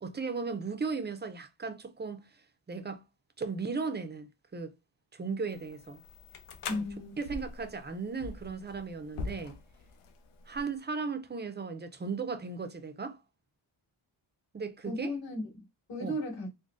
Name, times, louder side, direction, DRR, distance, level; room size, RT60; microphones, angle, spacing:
voice 1, 0.0-3.0 3.4-4.7 5.1-6.0 6.7-6.8 7.2-9.6 10.5-13.2 14.5-15.1 16.0-16.2, right 4 dB, 20° right, 0.4 m, -36 dB
sound 1, 5.5-10.8, left 4 dB, 85° left, 0.6 m, -44 dB
voice 2, 6.7-7.2 14.8-16.5, left 1 dB, 60° left, 2.0 m, -36 dB
3.8 x 2.1 x 2.4 m
cardioid pair, 95°, 50 cm